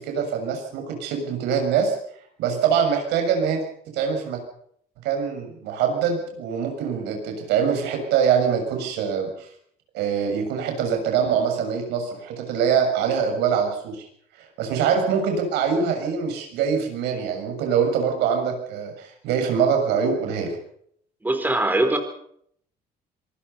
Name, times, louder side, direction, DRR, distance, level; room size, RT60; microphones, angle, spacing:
voice 1, 0.0-2.0 2.4-4.4 5.0-9.5 9.9-14.0 14.4-20.6 21.9-22.0, right 7 dB, 90° right, 4 dB, 6.8 m, -24 dB
voice 2, 21.2-22.0, right 2 dB, 10° right, 5 dB, 4.3 m, -21 dB
26.0 x 20.0 x 5.7 m, 0.66 s
cardioid pair, 110°, 17 cm